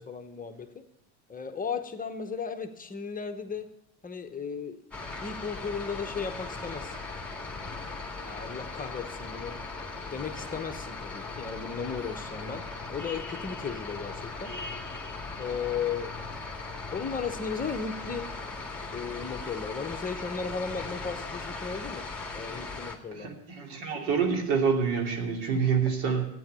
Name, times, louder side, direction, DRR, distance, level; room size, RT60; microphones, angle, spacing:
voice 1, 0.1-0.8 1.3-3.7 4.0-4.8 5.2-7.0 7.5-7.7 8.2-9.6 10.1-14.5 15.4-16.1 16.9-18.3 18.9-22.1 22.3-23.3, left 6 dB, 20° left, 1.0 m, -35 dB
sound 1, 4.9-23.0, left 3 dB, 5° left, 1.9 m, -38 dB
voice 2, 23.1-26.2, right 6 dB, 85° right, 3.0 m, -27 dB
12.5 x 9.3 x 6.8 m
supercardioid pair, 120°, 43 cm